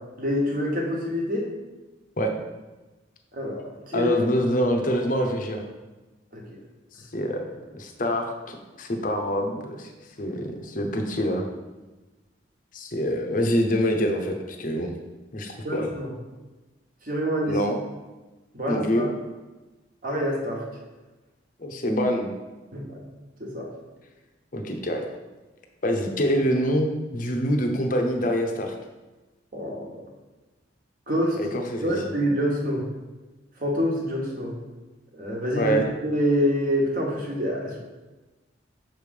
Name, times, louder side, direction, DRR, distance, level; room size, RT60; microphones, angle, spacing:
voice 1, 0.2-1.5 3.3-4.2 6.3-6.4 15.6-16.1 17.0-17.6 18.5-19.1 20.0-20.6 22.7-23.0 23.4-23.7 29.5-30.0 31.1-31.4 31.8-32.8 33.6-34.5 35.1-37.8, equal, 45° right, -1 dB, 1.2 m, -26 dB
voice 2, 3.9-5.6 6.9-9.9 10.2-11.4 12.7-14.9 15.3-15.9 17.5-17.8 18.7-19.1 21.6-22.3 24.5-25.0 25.8-28.7 31.4-32.1 35.6-35.9, equal, 45° left, 3 dB, 0.7 m, -25 dB
6.1 x 3.2 x 5.2 m, 1.2 s
head